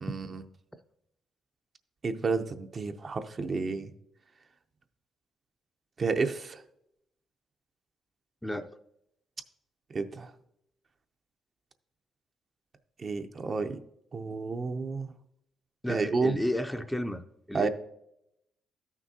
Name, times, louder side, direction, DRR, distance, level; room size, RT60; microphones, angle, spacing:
voice 1, 0.0-0.4 2.0-3.9 6.0-6.6 9.9-10.3 13.0-13.8 14.1-15.1 15.9-16.4 17.5-17.7, right 4 dB, 40° right, 8 dB, 0.6 m, -30 dB
voice 2, 15.8-17.7, left 1 dB, 5° left, 8 dB, 0.4 m, -32 dB
13.0 x 6.0 x 2.7 m, 0.79 s
cardioid pair, 90°, 0 cm